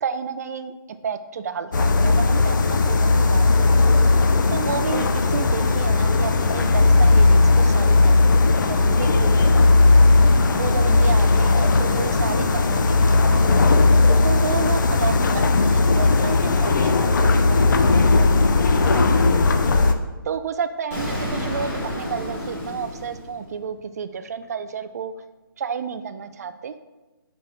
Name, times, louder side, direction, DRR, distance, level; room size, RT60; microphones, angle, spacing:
voice 1, 0.0-3.9 4.5-8.3 8.7-9.9 10.5-13.5 13.9-19.6 20.2-25.1 25.6-26.7, right 6 dB, 45° right, 10 dB, 0.4 m, -31 dB
sound 1, 1.7-19.9, left 3 dB, 55° left, 0.5 m, -17 dB
sound 2, 3.1-16.8, right 2 dB, 25° right, 1.0 m, -41 dB
Explosion, 20.9-23.8, left 1 dB, 35° left, 1.9 m, -30 dB
5.1 x 3.4 x 5.6 m, 1.2 s
hypercardioid pair, 160°, 12 cm